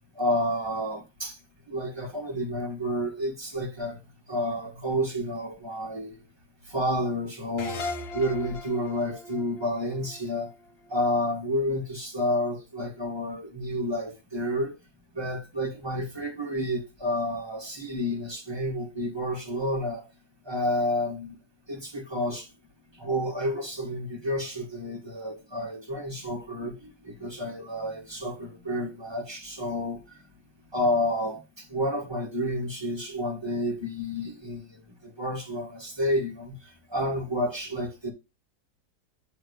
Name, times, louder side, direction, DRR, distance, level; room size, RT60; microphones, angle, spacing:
voice 1, 0.1-1.3 1.7-4.0 4.3-6.1 6.7-7.8 8.1-10.5 10.9-14.7 15.1-20.0 20.4-21.4 21.7-22.5 23.0-30.0 30.7-34.7 35.2-36.6 36.9-38.1, equal, 15° right, 1.7 m, -30 dB
sound 1, 7.6-10.9, left 2 dB, 45° left, 1.0 m, -38 dB
7.5 x 3.5 x 6.4 m
omnidirectional pair, 1.7 m